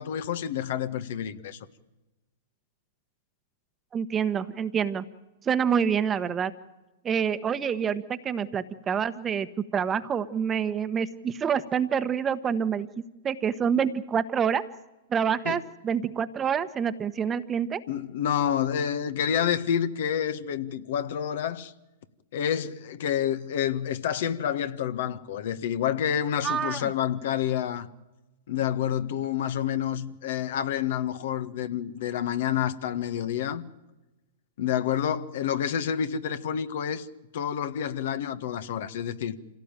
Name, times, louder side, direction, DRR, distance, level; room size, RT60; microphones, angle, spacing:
voice 1, 0.0-1.6 15.4-15.6 17.9-21.7 22.3-27.9 28.5-33.6 34.6-37.1 37.3-39.4, left 9 dB, 65° left, 1.5 m, -28 dB
voice 2, 3.9-5.0 5.4-6.5 7.0-9.5 9.7-12.9 13.2-14.6 15.1-17.8 26.4-26.9, right 7 dB, 20° right, 1.2 m, -27 dB
26.5 x 17.5 x 9.1 m
hypercardioid pair, 115°, 0 cm